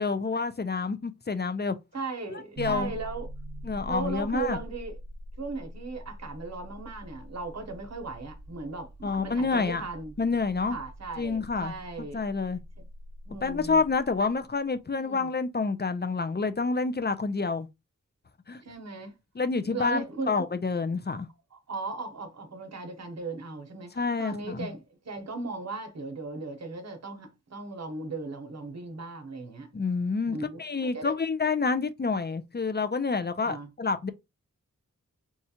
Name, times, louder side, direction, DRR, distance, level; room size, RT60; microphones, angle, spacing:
voice 1, 0.0-1.8 2.3-2.9 3.6-4.6 9.0-9.8 10.2-10.8 11.2-11.7 12.1-12.6 13.4-17.7 18.5-18.6 19.4-21.3 24.0-24.7 29.7-34.1, left 4 dB, 35° left, 0.5 m, -28 dB
voice 2, 1.9-3.3 3.9-5.0 5.4-10.1 10.7-12.2 12.8-12.9 13.3-13.8 15.0-15.3 18.6-19.2 19.6-20.3 21.1-21.2 21.5-29.7 30.3-31.1 33.4-33.7, right 3 dB, 55° right, 0.9 m, -37 dB
sound 1, 2.6-14.6, right 1 dB, 90° right, 0.8 m, -44 dB
4.2 x 2.4 x 2.8 m
wide cardioid pair, 60°, 31 cm